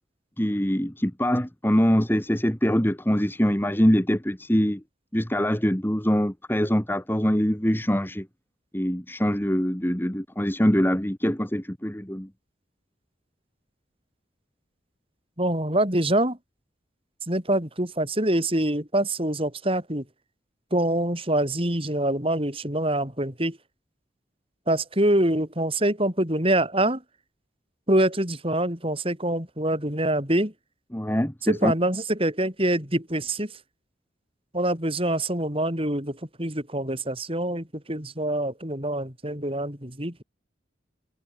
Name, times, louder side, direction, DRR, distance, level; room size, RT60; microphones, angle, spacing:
voice 1, 0.4-4.8 5.1-8.3 8.7-12.3 30.9-31.7, equal, 10° left, 1.7 m, -23 dB
voice 2, 15.4-16.4 17.3-20.0 20.7-23.6 24.7-27.0 27.9-30.5 31.4-33.6 34.5-40.2, right 1 dB, 30° right, 6.4 m, -25 dB
head